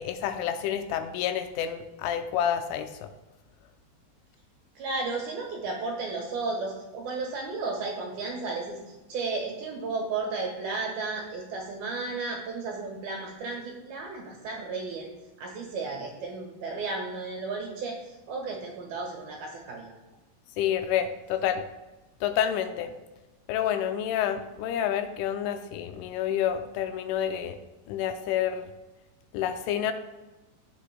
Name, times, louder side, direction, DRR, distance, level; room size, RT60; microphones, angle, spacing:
voice 1, 0.0-3.1 20.6-21.6 22.2-22.9 23.5-27.6 27.9-28.7 29.3-29.9, left 9 dB, 85° left, 8 dB, 3.1 m, -29 dB
voice 2, 4.8-15.1 15.4-19.9, right 3 dB, 65° right, 0 dB, 2.7 m, -34 dB
14.0 x 8.3 x 2.2 m, 1.1 s
omnidirectional pair, 5.6 m